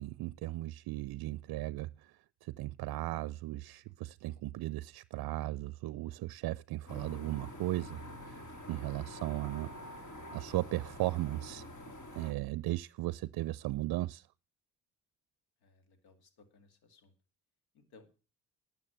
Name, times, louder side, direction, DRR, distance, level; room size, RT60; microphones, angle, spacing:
voice 1, 0.0-2.1 2.4-8.4 8.7-10.0 10.3-11.7 12.1-14.3, right 17 dB, 70° right, 0.5 m, -36 dB
sound 1, 6.9-12.3, left 1 dB, 55° left, 2.8 m, -47 dB
voice 2, 15.6-17.1 17.7-18.1, left 4 dB, 85° left, 2.3 m, -62 dB
12.0 x 7.0 x 7.3 m
supercardioid pair, 55°, 37 cm